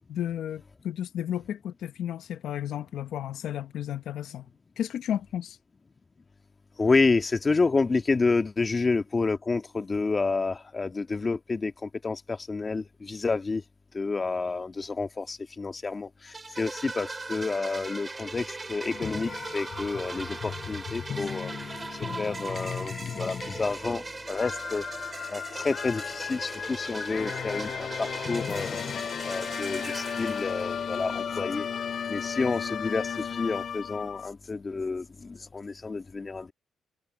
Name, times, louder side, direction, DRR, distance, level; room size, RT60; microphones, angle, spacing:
voice 1, 0.1-4.5 4.8-5.6, left 10 dB, 75° left, 1.2 m, -33 dB
voice 2, 6.8-13.6 13.9-21.5 21.9-24.8 25.3-28.8 29.3-31.7 32.1-36.5, left 4 dB, 30° left, 1.8 m, -29 dB
sound 1, 16.3-31.1, right 3 dB, 25° right, 7.1 m, -39 dB
sound 2, 18.9-34.3, left 7 dB, 50° left, 0.4 m, -35 dB
cardioid pair, 90°, 0 cm